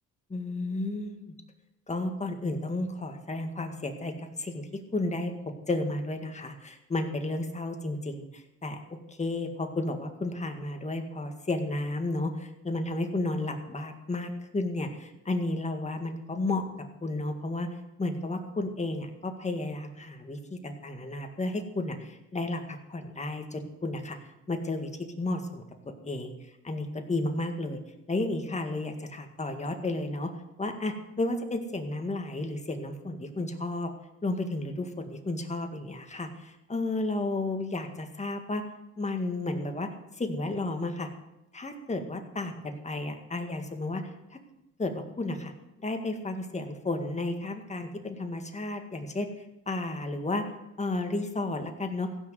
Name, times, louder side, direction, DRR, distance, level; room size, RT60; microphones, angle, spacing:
voice 1, 0.3-1.3 1.9-5.3 5.7-8.8 9.1-16.6 17.0-24.2 24.5-24.9 25.2-25.6 26.0-26.3 26.6-27.8 28.1-30.3 30.6-33.9 34.2-38.6 39.0-39.9 40.2-41.1 41.5-44.4 44.8-45.5 45.8-49.3 49.7-50.4 50.8-52.1, left 2 dB, 25° left, 5 dB, 1.9 m, -32 dB
16.0 x 6.3 x 7.7 m, 0.92 s
cardioid pair, 90°, 30 cm